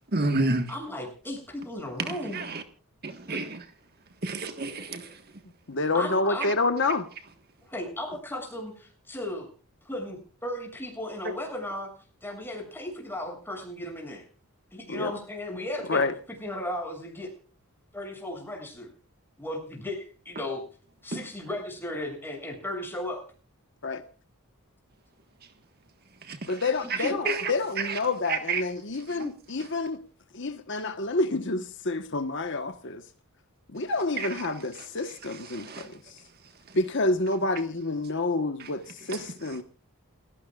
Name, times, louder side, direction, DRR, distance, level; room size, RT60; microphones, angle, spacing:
voice 1, 0.1-0.7 2.1-2.6 3.0-3.6 4.2-5.1 21.1-21.2 26.3-26.6 27.3-27.4 27.8-28.0 28.3-28.6 29.2-29.3 34.2-34.3 35.5-35.8 39.1-39.2, right 3 dB, 45° right, 1.5 m, -30 dB
voice 2, 0.7-2.5 3.3-3.5 5.9-6.5 7.7-9.5 9.9-11.9 12.2-14.2 14.7-16.0 16.4-17.3 17.9-18.9 19.4-20.6 21.0-23.2 26.8-27.4, left 1 dB, 10° left, 7.2 m, -35 dB
voice 3, 5.7-7.0 14.9-15.1 15.9-16.1 23.8-24.0 26.5-30.0 30.3-33.0 33.7-35.9 36.7-38.8 39.1-39.6, left 3 dB, 55° left, 1.3 m, -28 dB
29.5 x 16.0 x 2.4 m
head